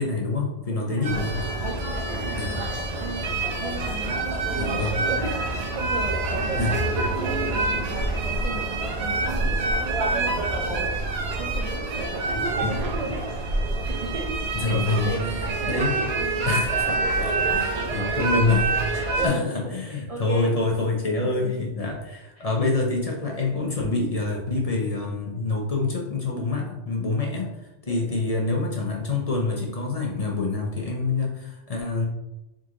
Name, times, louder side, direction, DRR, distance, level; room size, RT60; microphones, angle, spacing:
voice 1, 0.0-1.4 2.4-2.7 4.6-4.9 6.6-6.7 12.6-12.7 14.5-15.1 15.7-16.0 16.5-16.9 17.2-18.7 19.2-27.5 27.9-32.0, left 3 dB, 40° left, -1 dB, 0.6 m, -26 dB
voice 2, 0.7-1.2 1.6-2.5 3.0-3.3 3.6-10.9 11.4-13.3 13.9-18.1 18.9-20.6 21.0-21.7 22.4-22.7 27.9-28.2, right 2 dB, 50° right, 0 dB, 0.4 m, -35 dB
sound 1, 1.0-19.3, right 2 dB, 70° right, 0.9 m, -26 dB
3.8 x 3.0 x 3.7 m, 0.94 s
omnidirectional pair, 1.1 m